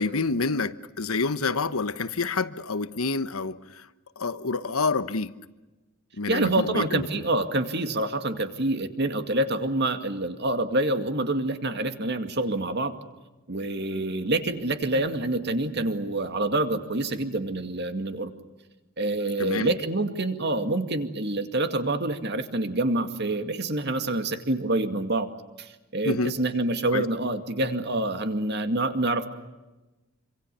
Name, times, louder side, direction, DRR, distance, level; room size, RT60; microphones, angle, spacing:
voice 1, 0.0-3.9 4.2-5.3 6.2-7.1 19.4-19.7 26.0-26.3 26.9-27.0, left 3 dB, 90° left, 1.2 m, -28 dB
voice 2, 6.3-12.9 13.5-18.3 19.0-25.3 25.6-29.3, right 2 dB, 50° right, 2.3 m, -27 dB
27.0 x 26.0 x 6.9 m
head